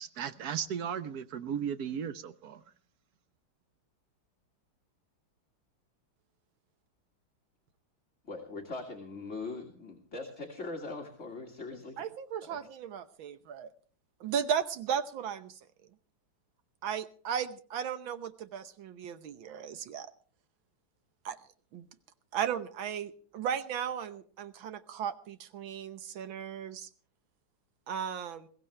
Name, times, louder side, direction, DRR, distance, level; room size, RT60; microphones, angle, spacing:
voice 1, 0.0-2.6, right 8 dB, 60° right, 11 dB, 1.2 m, -36 dB
voice 2, 8.2-12.0 12.4-12.6, left 3 dB, 35° left, 1 dB, 2.1 m, -41 dB
voice 3, 12.0-13.7 14.2-15.5 16.8-20.1 21.2-21.4 21.7-21.9 22.3-26.9 27.9-28.5, right 8 dB, 75° right, 11 dB, 1.7 m, -35 dB
21.5 x 16.0 x 3.2 m, 0.44 s
omnidirectional pair, 2.2 m